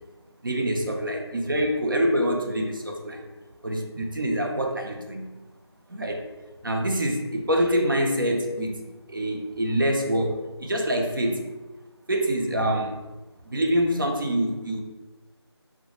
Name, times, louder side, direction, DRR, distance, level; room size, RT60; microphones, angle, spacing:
voice 1, 0.4-3.3 3.6-5.3 5.9-6.3 6.6-8.8 9.1-11.4 12.1-13.0 13.4-14.8, equal, 50° right, 3 dB, 0.4 m, -25 dB
3.0 x 2.1 x 2.8 m, 1.1 s
figure-of-eight pair, 180°, 14 cm